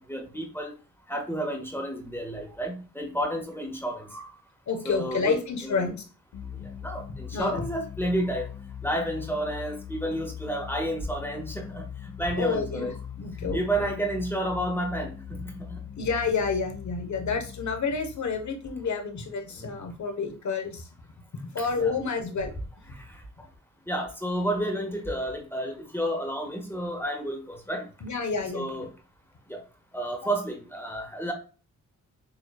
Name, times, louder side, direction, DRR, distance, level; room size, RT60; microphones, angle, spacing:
voice 1, 0.1-0.7 1.1-4.3 4.8-5.3 5.6-5.9 6.8-8.5 8.8-12.9 13.4-15.8 21.8-21.9 23.9-27.8 28.5-28.9 29.5-29.6 29.9-31.3, right 1 dB, 5° left, 2 dB, 1.5 m, -31 dB
voice 2, 4.7-6.0 7.3-7.6 12.4-13.6 15.3-15.4 16.0-20.9 21.5-22.5 28.0-28.9, left 5 dB, 65° left, 5 dB, 1.2 m, -29 dB
sound 1, 6.3-19.6, left 9 dB, 85° left, 0.9 m, -41 dB
6.9 x 3.1 x 2.3 m, 0.35 s
cardioid pair, 70°, 31 cm